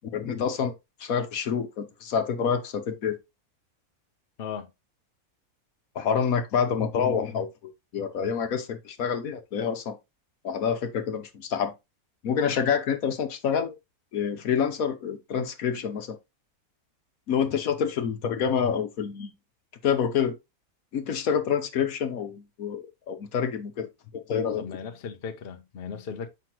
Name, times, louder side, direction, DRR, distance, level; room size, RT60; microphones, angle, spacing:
voice 1, 0.1-0.7 1.0-3.2 5.9-10.0 10.4-11.7 12.2-13.8 14.1-16.2 17.3-19.3 19.8-20.3 20.9-23.9 24.1-24.8, left 7 dB, 70° left, 1.4 m, -27 dB
voice 2, 4.4-4.7 24.6-26.3, left 6 dB, 50° left, 1.0 m, -37 dB
7.8 x 5.7 x 3.0 m
omnidirectional pair, 1.5 m